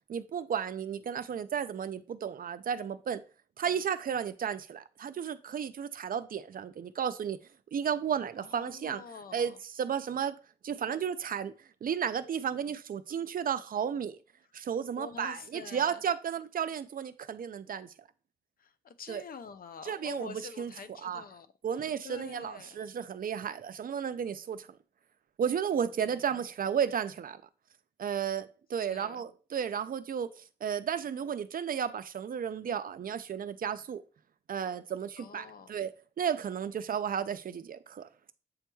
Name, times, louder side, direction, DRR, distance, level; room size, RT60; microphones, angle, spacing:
voice 1, 0.1-3.2 3.6-7.4 7.7-9.0 9.3-10.4 10.6-11.5 11.8-14.2 14.5-17.9 19.1-19.2 19.8-20.7 21.0-21.2 21.6-24.7 25.4-27.4 28.0-34.0 34.5-35.9 36.2-38.1, right 8 dB, 60° right, 0.4 m, -33 dB
voice 2, 8.4-9.6 15.0-16.0 18.6-21.5 21.8-22.9 26.0-26.3 28.8-29.2 35.2-35.8, left 6 dB, 60° left, 0.5 m, -47 dB
7.7 x 3.0 x 2.2 m
cardioid pair, 85°, 17 cm